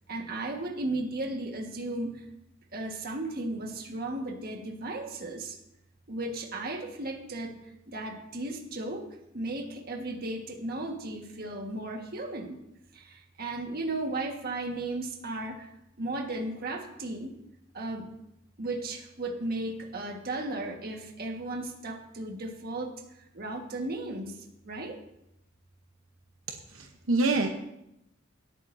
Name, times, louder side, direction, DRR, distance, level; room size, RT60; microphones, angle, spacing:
voice 1, 0.1-2.2 2.7-5.6 6.1-7.6 7.9-9.1 9.3-12.6 12.9-15.7 16.0-17.3 17.7-18.1 18.6-24.4 24.6-25.0, right 2 dB, 50° right, 2 dB, 1.5 m, -35 dB
voice 2, 26.7-27.5, right 2 dB, 80° right, 3 dB, 1.0 m, -25 dB
18.0 x 8.7 x 2.7 m, 0.83 s
head